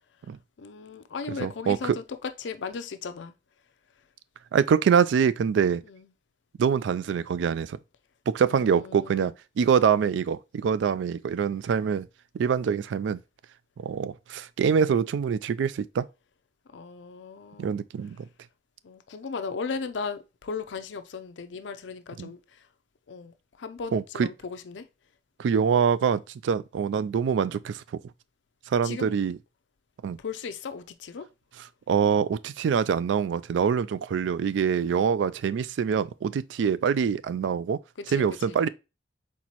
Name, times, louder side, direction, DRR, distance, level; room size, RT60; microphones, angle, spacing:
voice 1, 0.6-3.3 5.8-6.1 8.5-9.3 16.7-17.8 18.8-22.4 23.1-24.9 28.8-29.1 30.2-31.3 38.0-38.6, left 5 dB, 85° left, 0.5 m, -37 dB
voice 2, 1.4-2.0 4.5-5.8 6.6-7.8 8.3-12.1 12.3-13.2 13.8-16.1 17.6-18.2 22.2-22.3 23.9-24.3 25.4-27.8 28.7-29.4 30.0-30.2 31.9-37.8 38.1-38.7, right 7 dB, 90° right, 0.3 m, -25 dB
4.3 x 4.1 x 2.9 m
head